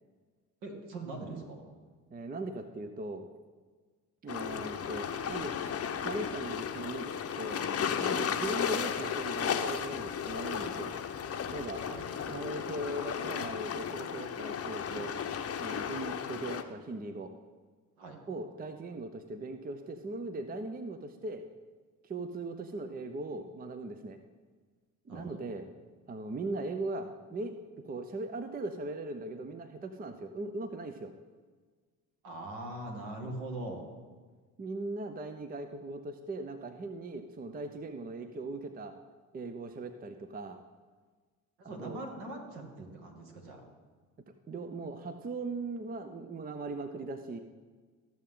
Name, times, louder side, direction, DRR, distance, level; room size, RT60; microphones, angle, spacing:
voice 1, 0.6-1.6 11.8-12.0 14.9-15.1 18.0-18.2 25.1-25.4 32.2-33.9 41.6-43.6, right 2 dB, 60° right, 1 dB, 2.2 m, -42 dB
voice 2, 2.1-3.2 4.2-5.5 6.0-7.6 8.0-10.9 11.5-11.8 12.3-15.1 15.6-17.3 18.3-21.4 22.1-24.2 25.1-25.7 26.1-27.6 27.8-31.1 34.6-39.0 39.3-40.6 41.6-42.0 44.5-47.4, right 2 dB, 20° right, 8 dB, 0.7 m, -39 dB
sound 1, 4.3-16.6, left 7 dB, 35° left, 0.9 m, -34 dB
13.5 x 7.4 x 3.7 m, 1.5 s
figure-of-eight pair, 50°, 44 cm